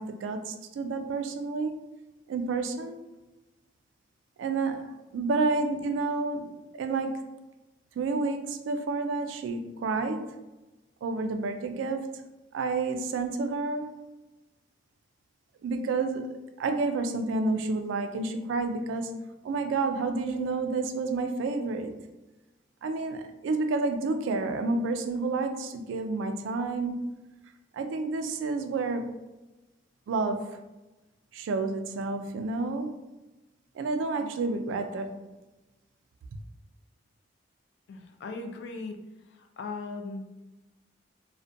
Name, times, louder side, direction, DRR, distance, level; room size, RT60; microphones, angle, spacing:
voice 1, 0.0-1.8 2.3-3.0 4.4-7.2 8.0-10.3 11.0-12.1 12.5-14.0 15.6-19.1 19.4-21.9 22.8-27.2 27.7-29.2 30.1-30.6 31.3-33.0 33.8-35.2, right 3 dB, 80° right, 7 dB, 0.3 m, -30 dB
voice 2, 37.9-39.0 39.4-40.4, left 3 dB, 65° left, 4 dB, 0.3 m, -38 dB
2.4 x 2.1 x 2.5 m, 1.1 s
head